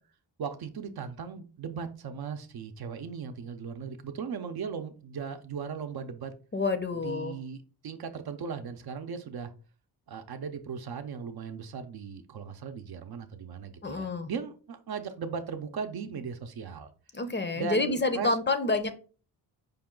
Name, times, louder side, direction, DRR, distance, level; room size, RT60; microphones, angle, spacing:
voice 1, 0.4-6.3 7.0-9.5 10.1-16.9 17.5-18.4, right 6 dB, 65° right, 7 dB, 0.6 m, -37 dB
voice 2, 6.5-7.4 13.8-14.3 17.1-18.9, left 3 dB, 25° left, 9 dB, 0.5 m, -28 dB
5.3 x 2.3 x 3.7 m, 0.38 s
cardioid pair, 95°, 42 cm